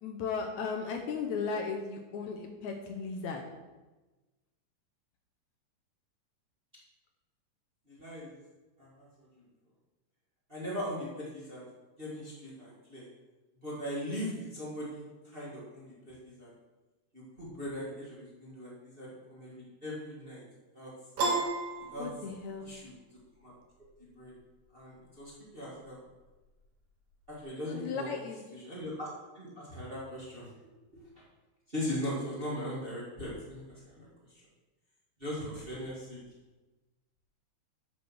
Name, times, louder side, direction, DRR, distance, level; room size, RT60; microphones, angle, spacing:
voice 1, 0.0-3.4 22.0-22.7 27.7-28.4, left 5 dB, 70° left, 3 dB, 2.0 m, -36 dB
voice 2, 7.9-8.3 8.8-9.1 10.5-11.6 12.0-13.1 13.6-15.0 15.3-16.5 17.1-20.4 20.7-20.9 21.9-22.1 22.6-22.9 23.4-23.5 24.0-24.3 24.7-26.0 27.3-28.1 28.5-29.1 29.3-30.5 30.9-31.2 31.7-33.6 33.9-34.1 35.2-36.2, equal, 20° right, -5 dB, 1.7 m, -39 dB
Piano, 21.2-22.7, right 3 dB, 55° right, 2.4 m, -32 dB
8.5 x 5.9 x 6.3 m, 1.2 s
omnidirectional pair, 3.7 m